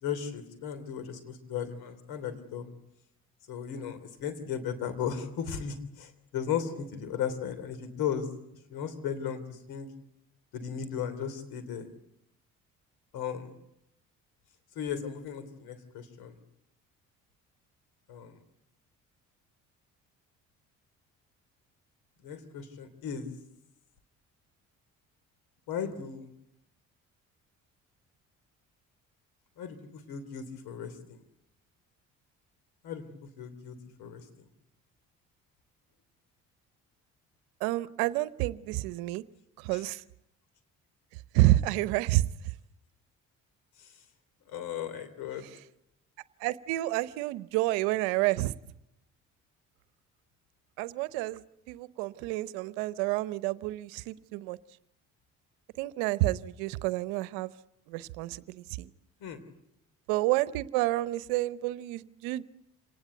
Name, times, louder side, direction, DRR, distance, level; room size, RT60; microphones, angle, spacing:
voice 1, 0.0-2.7 3.5-8.3 8.7-9.9 10.5-11.9 13.1-13.5 14.7-16.4 18.1-18.4 22.2-23.3 25.7-26.3 29.6-31.2 32.8-33.0 33.4-34.3 39.7-39.8 43.8-43.9 44.5-45.5 59.2-59.4, left 8 dB, 75° left, 11 dB, 3.3 m, -36 dB
voice 2, 37.6-39.2 39.6-40.0 41.3-42.2 46.4-48.5 50.8-51.4 51.7-54.6 55.8-57.5 57.9-58.9 60.1-62.4, right 18 dB, 80° right, 17 dB, 0.9 m, -29 dB
26.5 x 19.0 x 8.0 m, 0.84 s
hypercardioid pair, 60°, 38 cm